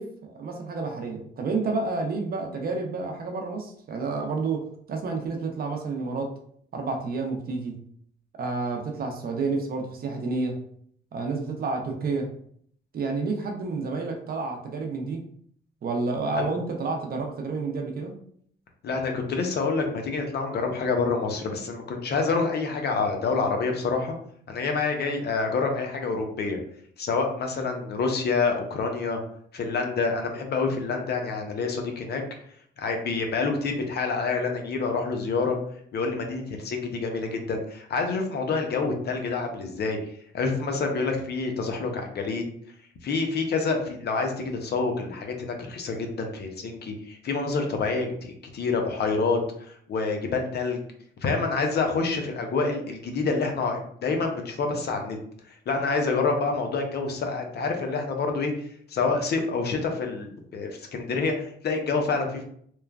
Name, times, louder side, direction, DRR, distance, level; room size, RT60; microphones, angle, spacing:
voice 1, 0.0-6.3 6.7-7.8 8.4-10.6 11.1-12.3 12.9-15.2 15.8-18.2, right 3 dB, 50° right, 3 dB, 0.6 m, -30 dB
voice 2, 18.8-24.1 24.5-26.6 27.0-29.2 29.5-32.2 32.8-35.6 35.9-40.0 40.3-42.4 43.0-49.4 49.7-50.8 51.2-55.2 55.7-58.5 58.9-62.4, left 4 dB, 55° left, 3 dB, 0.6 m, -27 dB
3.0 x 2.1 x 2.3 m, 0.63 s
cardioid pair, 90°, 20 cm